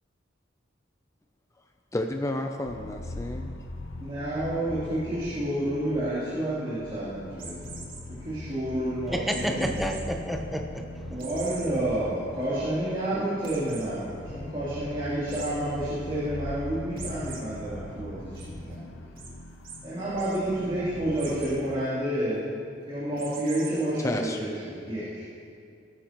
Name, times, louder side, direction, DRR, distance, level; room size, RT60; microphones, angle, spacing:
voice 1, 1.9-3.5 24.0-24.4, left 1 dB, 15° left, 3 dB, 0.5 m, -31 dB
sound 1, 2.7-21.6, left 1 dB, 85° left, 0.8 m, -41 dB
voice 2, 4.0-7.8 8.2-9.7 11.1-18.9 19.8-22.5 22.9-25.2, right 1 dB, 30° right, -12 dB, 3.0 m, -30 dB
sound 2, 7.4-8.0 9.3-10.0 10.4-10.5 11.2-11.7 12.2-12.3 12.6-12.7 13.4-13.9 15.3-15.5 17.0-17.4 17.8-18.4 19.2-19.3 19.6-19.8 20.1-20.4 21.1-21.5 23.2-23.8, right 5 dB, 50° right, 1.8 m, -42 dB
voice 3, 9.1-11.3, equal, ahead, 2 dB, 0.8 m, -30 dB
18.0 x 10.0 x 3.0 m, 2.4 s
head